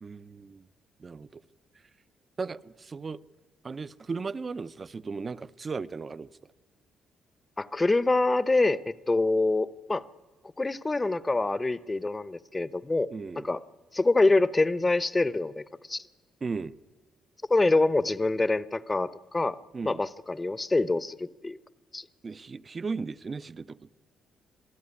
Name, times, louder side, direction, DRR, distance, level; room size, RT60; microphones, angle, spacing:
voice 1, 0.0-0.7 1.0-1.4 2.4-3.2 3.6-6.3 13.1-13.5 16.4-16.8 19.7-20.0 22.2-23.9, right 4 dB, 35° right, 0.7 m, -36 dB
voice 2, 7.6-10.0 10.6-13.1 13.4-13.6 13.9-16.0 17.5-19.6 19.8-21.6 21.9-22.0, left 2 dB, 20° left, 0.8 m, -25 dB
26.5 x 16.0 x 9.8 m
cardioid pair, 90°, 0 cm